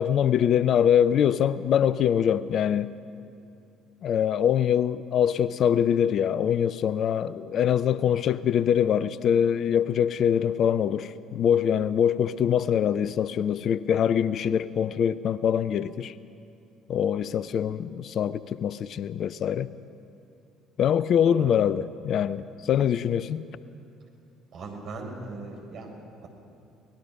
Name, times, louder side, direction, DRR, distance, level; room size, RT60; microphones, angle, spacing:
voice 1, 0.0-2.9 4.0-16.1 16.9-19.7 20.8-23.4, left 9 dB, 45° left, 0.5 m, -24 dB
voice 2, 24.5-25.9 26.2-26.3, right 3 dB, 50° right, 4.5 m, -38 dB
23.0 x 19.0 x 5.9 m
figure-of-eight pair, 50°, 0 cm